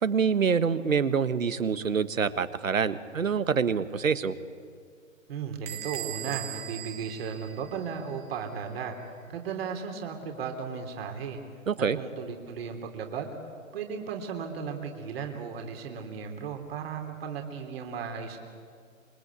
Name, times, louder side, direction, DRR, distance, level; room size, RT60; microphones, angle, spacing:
voice 1, 0.0-4.3 11.7-12.0, right 6 dB, 75° right, 13 dB, 1.5 m, -26 dB
voice 2, 5.3-8.9 9.3-11.4 12.0-13.3 13.7-18.4, right 6 dB, 45° right, 4 dB, 3.4 m, -35 dB
Bell / Door, 5.7-8.2, right 12 dB, 15° right, 1.4 m, -39 dB
27.0 x 24.0 x 8.3 m, 2.2 s
figure-of-eight pair, 135°, 40 cm